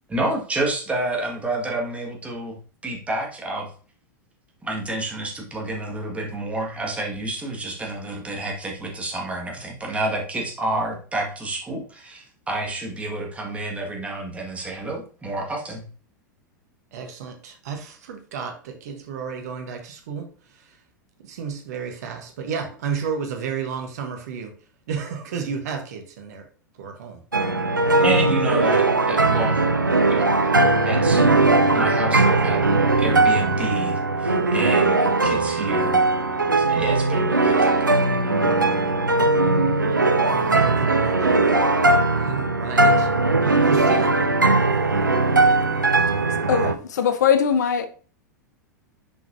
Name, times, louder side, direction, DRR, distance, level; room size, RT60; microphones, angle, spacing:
voice 1, 0.1-2.5 2.8-3.7 4.6-15.8 28.0-29.6 30.1-30.3 30.8-31.2 31.7-36.0 36.6-37.7, right 2 dB, 10° right, 1.9 m, -29 dB
voice 2, 16.9-20.7 21.2-24.5 24.9-26.5 26.8-27.2 27.8-28.2 40.3-41.5 42.1-43.1 43.6-44.1, right 6 dB, 55° right, 1.2 m, -32 dB
sound 1, 27.3-46.8, right 2 dB, 85° right, 0.6 m, -19 dB
voice 3, 46.5-47.9, left 8 dB, 60° left, 0.8 m, -20 dB
6.9 x 5.1 x 2.7 m
figure-of-eight pair, 90°, 10 cm